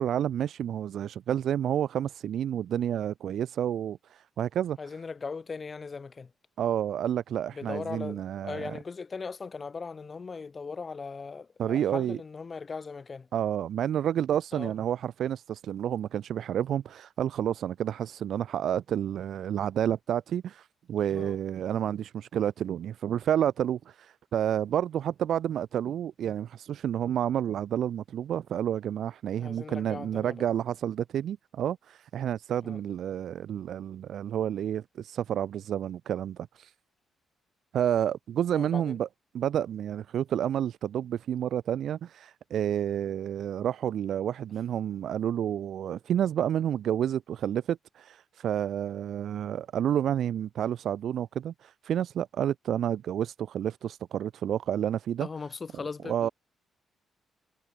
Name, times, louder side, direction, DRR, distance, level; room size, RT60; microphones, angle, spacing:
voice 1, 0.0-4.8 6.6-8.7 11.6-12.2 13.3-36.7 37.7-39.1 39.3-55.3 56.1-56.3, right 10 dB, 65° right, 3.0 m, -30 dB
voice 2, 4.8-6.3 7.5-13.3 14.5-14.7 21.1-21.4 29.4-30.4 32.6-32.8 38.6-39.0 55.2-56.3, left 4 dB, 30° left, 4.1 m, -39 dB
cardioid pair, 125°, 0 cm